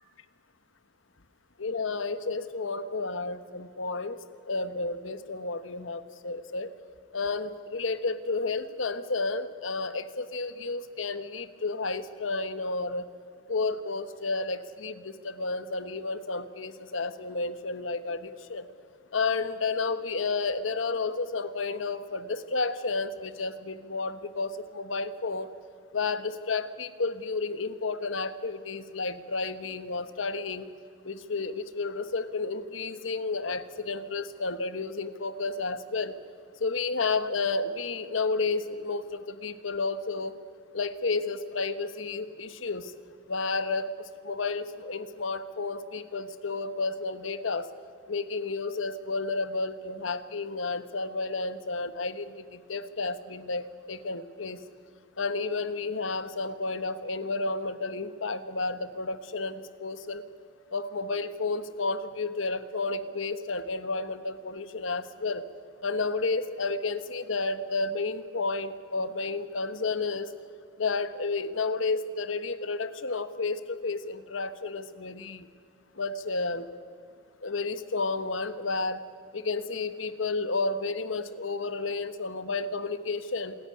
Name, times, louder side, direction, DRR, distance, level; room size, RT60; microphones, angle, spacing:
voice 1, 1.6-4.2 4.5-6.7 7.1-13.1 13.5-18.6 19.1-25.5 25.9-30.6 31.0-36.1 36.6-40.4 40.7-42.9 43.3-43.9 44.2-47.7 48.1-54.6 55.2-60.2 60.7-65.4 65.8-70.3 70.8-75.5 76.0-76.7 77.4-79.0 79.3-83.6, left 3 dB, 85° left, 13 dB, 1.2 m, -31 dB
26.5 x 14.0 x 9.8 m, 2.1 s
head